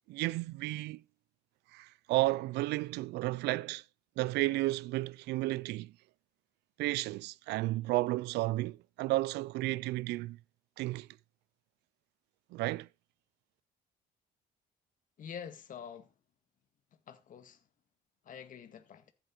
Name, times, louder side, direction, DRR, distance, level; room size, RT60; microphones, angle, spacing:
voice 1, 0.1-1.0 1.7-3.8 4.2-5.9 6.8-10.4 10.8-11.1 12.5-12.9, right 19 dB, 85° right, 0.5 m, -32 dB
voice 2, 15.2-16.1 17.1-17.6 18.3-19.1, left 7 dB, 50° left, 2.0 m, -46 dB
14.5 x 8.0 x 4.5 m
cardioid pair, 110°, 17 cm